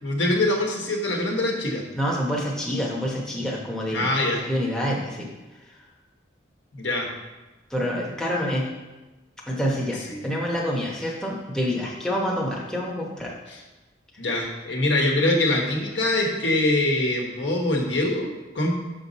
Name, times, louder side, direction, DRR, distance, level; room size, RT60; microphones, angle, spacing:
voice 1, 0.0-1.8 3.9-4.4 6.7-7.1 10.1-10.2 13.5-13.6 14.2-18.7, left 1 dB, 70° left, 0 dB, 1.3 m, -24 dB
voice 2, 2.0-4.1 4.4-5.3 7.7-8.7 9.5-13.3, equal, 5° left, -4 dB, 0.9 m, -27 dB
6.3 x 6.1 x 4.0 m, 1.1 s
head